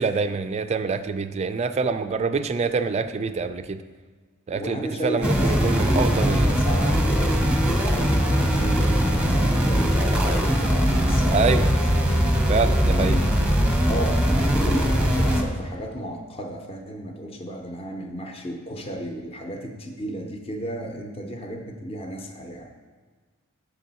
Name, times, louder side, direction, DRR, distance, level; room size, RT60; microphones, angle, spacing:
voice 1, 0.0-3.8 4.5-6.5 11.3-11.7 12.5-13.2, right 4 dB, 30° right, 10 dB, 0.3 m, -25 dB
voice 2, 4.5-7.5 8.0-11.7 12.9-13.4 13.8-22.7, equal, 25° left, 3 dB, 0.7 m, -33 dB
sound 1, 5.2-15.4, equal, 5° right, 0.8 m, -21 dB
8.2 x 6.9 x 4.1 m, 1.5 s
head